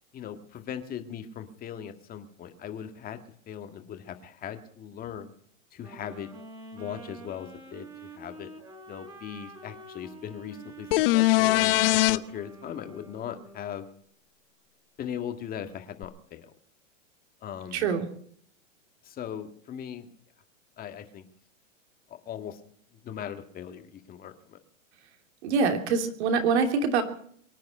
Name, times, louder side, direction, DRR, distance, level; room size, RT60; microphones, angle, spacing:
voice 1, 0.1-3.2 3.5-5.3 5.7-6.3 6.7-8.5 8.9-13.9 15.0-16.5 17.4-18.0 19.0-20.1 20.8-21.2 22.1-22.6 23.0-24.6, left 9 dB, 20° left, 7 dB, 1.7 m, -39 dB
sound 1, 5.8-14.0, right 2 dB, 10° right, 3.3 m, -47 dB
sound 2, 10.9-12.2 16.0-16.1, left 18 dB, 45° left, 0.7 m, -21 dB
voice 2, 17.7-18.1 25.4-27.0, right 5 dB, 55° right, 6 dB, 3.0 m, -24 dB
23.5 x 9.4 x 5.5 m, 0.63 s
hypercardioid pair, 130°, 39 cm